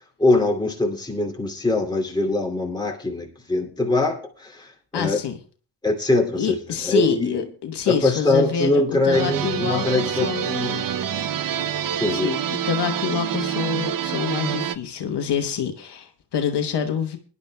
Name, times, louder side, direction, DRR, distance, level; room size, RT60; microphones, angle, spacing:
voice 1, 0.2-5.2 5.8-6.6 6.8-7.5 7.9-10.8 12.0-12.3, left 2 dB, 10° left, -1 dB, 2.5 m, -22 dB
voice 2, 4.9-5.4 6.3-10.5 12.1-12.4 12.6-17.2, left 7 dB, 70° left, 6 dB, 1.2 m, -26 dB
sound 1, 9.1-14.8, right 9 dB, 50° right, 0.6 m, -27 dB
23.0 x 11.0 x 2.2 m, 0.40 s
cardioid pair, 100°, 42 cm